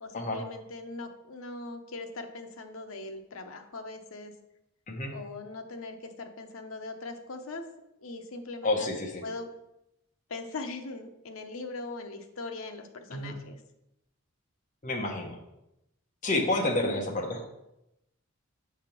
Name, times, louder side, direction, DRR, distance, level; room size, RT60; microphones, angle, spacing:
voice 1, 0.0-4.3 5.1-7.6 8.0-8.9 9.2-9.5 10.3-13.6 16.7-17.0, left 3 dB, 80° left, 6 dB, 0.8 m, -40 dB
voice 2, 8.6-9.2 13.1-13.3 14.8-15.4 16.2-17.4, left 2 dB, 40° left, 1 dB, 1.1 m, -29 dB
6.7 x 3.5 x 5.9 m, 0.87 s
head